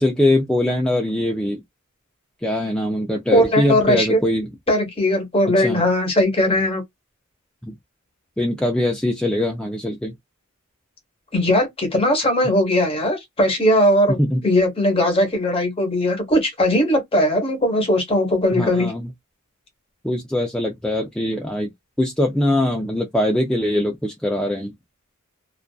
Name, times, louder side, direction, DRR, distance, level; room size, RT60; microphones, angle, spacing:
voice 1, 0.0-1.6 2.4-4.5 5.6-5.8 7.6-7.8 8.4-10.1 14.2-14.4 18.5-19.1 20.0-21.7 22.0-24.7, left 1 dB, 5° left, 0.3 m, -22 dB
voice 2, 3.3-4.2 4.7-6.8 11.3-14.2 14.4-18.9, left 1 dB, 25° left, 0.9 m, -19 dB
2.4 x 2.3 x 2.2 m
head